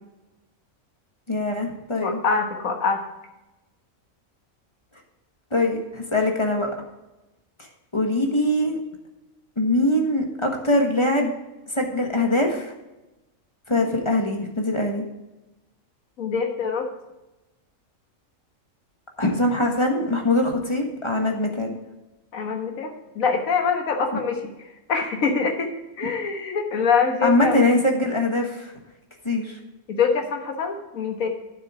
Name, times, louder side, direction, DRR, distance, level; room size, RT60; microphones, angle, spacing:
voice 1, 1.3-2.2 5.5-6.7 7.9-8.8 9.6-11.3 11.7-12.7 13.7-15.1 19.2-21.8 27.2-28.7 29.2-29.6, left 1 dB, 20° left, 2 dB, 1.4 m, -22 dB
voice 2, 2.0-3.0 16.2-16.9 22.3-24.5 24.9-25.7 26.0-27.8 29.9-31.3, left 5 dB, 80° left, 4 dB, 1.7 m, -24 dB
9.5 x 7.8 x 4.8 m, 1.0 s
omnidirectional pair, 1.4 m